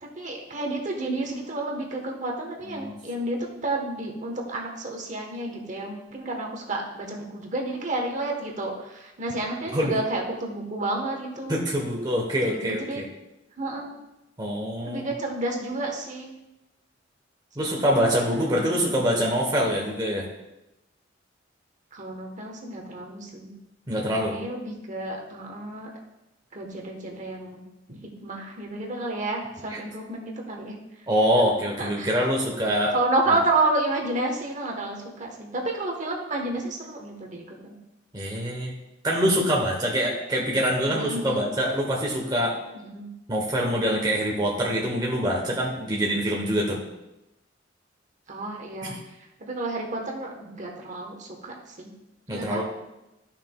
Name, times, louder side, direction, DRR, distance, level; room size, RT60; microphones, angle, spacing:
voice 1, 0.0-11.6 12.4-13.0 13.6-14.0 14.8-16.3 17.6-17.9 18.3-19.0 21.9-23.5 24.3-25.9 26.5-27.6 28.2-30.7 31.8-32.1 32.9-37.7 40.9-41.4 42.7-43.1 48.3-48.9 49.4-51.9 52.3-52.6, right 2 dB, 40° right, 0 dB, 1.2 m, -30 dB
voice 2, 11.5-13.0 14.4-15.1 17.6-20.3 23.9-24.4 29.7-29.8 31.1-32.9 38.1-38.7 39.0-42.6 43.3-46.8 48.8-49.0 52.3-52.6, equal, 20° right, -2 dB, 1.0 m, -25 dB
13.0 x 5.8 x 2.3 m, 0.94 s
head